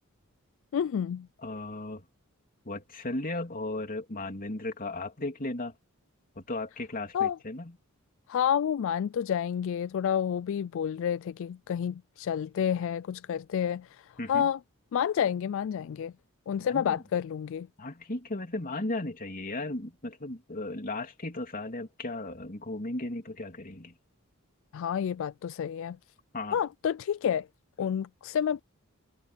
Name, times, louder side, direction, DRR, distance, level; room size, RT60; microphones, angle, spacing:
voice 1, 0.7-1.3 7.1-7.4 8.3-14.6 14.9-16.1 16.5-17.7 24.7-26.0 26.5-27.5 27.8-28.6, left 8 dB, 60° left, 0.3 m, -29 dB
voice 2, 1.4-2.0 2.6-5.7 6.4-7.7 14.2-14.5 16.7-17.0 17.8-23.9 26.3-26.6, left 2 dB, 40° left, 3.0 m, -36 dB
head